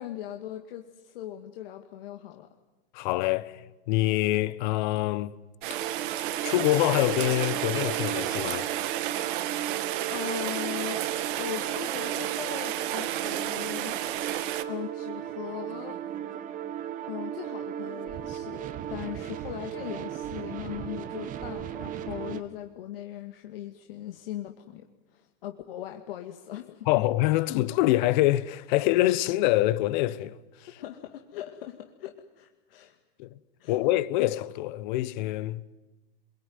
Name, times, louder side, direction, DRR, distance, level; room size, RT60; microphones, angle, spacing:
voice 1, 0.0-2.5 10.1-11.1 11.4-14.0 14.3-16.0 17.1-24.9 25.1-26.9 30.8-33.0 33.6-33.8, left 12 dB, 65° left, 2.2 m, -39 dB
voice 2, 2.9-5.4 6.4-8.7 26.9-30.4 33.2-33.3 33.7-35.6, left 16 dB, 50° left, 1.2 m, -25 dB
Rain, 5.6-14.6, right 13 dB, 55° right, 1.9 m, -32 dB
sound 1, 5.7-22.4, right 11 dB, 25° right, 1.4 m, -36 dB
26.5 x 22.5 x 9.6 m
supercardioid pair, 145°, 31 cm